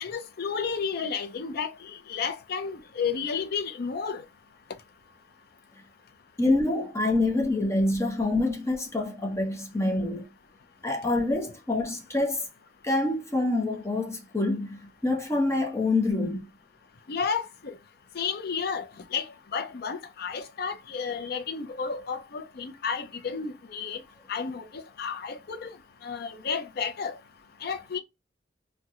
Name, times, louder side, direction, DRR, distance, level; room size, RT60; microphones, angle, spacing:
voice 1, 0.0-4.2 17.1-17.7 18.2-18.9 19.1-24.0 24.3-25.7 26.0-27.2 27.6-28.0, left 6 dB, 60° left, 0.5 m, -32 dB
voice 2, 6.4-10.2 10.8-12.4 12.8-16.5, left 2 dB, 15° left, 0.7 m, -26 dB
2.9 x 2.1 x 3.5 m
head